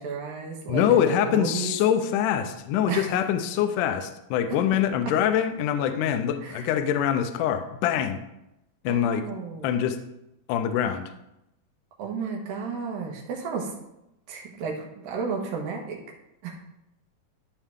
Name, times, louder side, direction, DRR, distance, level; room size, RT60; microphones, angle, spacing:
voice 1, 0.0-1.8 2.9-3.1 6.4-6.7 8.9-9.7 12.0-13.7 14.3-16.0 16.4-16.6, right 5 dB, 70° right, 0 dB, 2.9 m, -33 dB
voice 2, 0.7-8.2 8.8-9.2 9.6-10.0 10.5-11.1, left 9 dB, 80° left, 7 dB, 1.9 m, -24 dB
13.0 x 4.8 x 3.6 m, 0.86 s
omnidirectional pair, 4.3 m